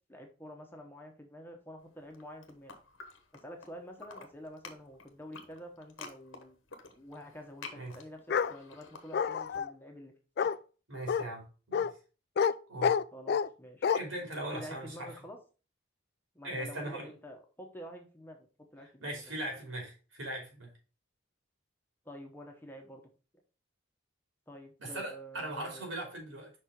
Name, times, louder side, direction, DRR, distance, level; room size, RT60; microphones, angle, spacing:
voice 1, 0.1-2.8 3.3-6.6 6.9-10.1 10.4-10.5 13.1-14.0 14.3-15.4 16.3-18.5 18.7-19.1 22.0-23.0 24.5-25.9, equal, 10° left, 2 dB, 1.0 m, -48 dB
sound 1, 2.0-3.7 4.0-9.6, left 4 dB, 90° left, 1.1 m, -50 dB
Bark, 8.3-8.5 9.1-9.7 10.4-10.6 11.1-11.2 11.7-11.9 12.4-12.5 12.8-13.5 13.8-14.0, left 7 dB, 55° left, 0.3 m, -28 dB
voice 2, 10.9-11.9 12.7-12.9 13.9-15.1 16.4-17.1 19.0-20.7 24.8-26.5, right 1 dB, 85° right, 1 dB, 2.9 m, -39 dB
5.5 x 4.3 x 4.6 m, 0.34 s
head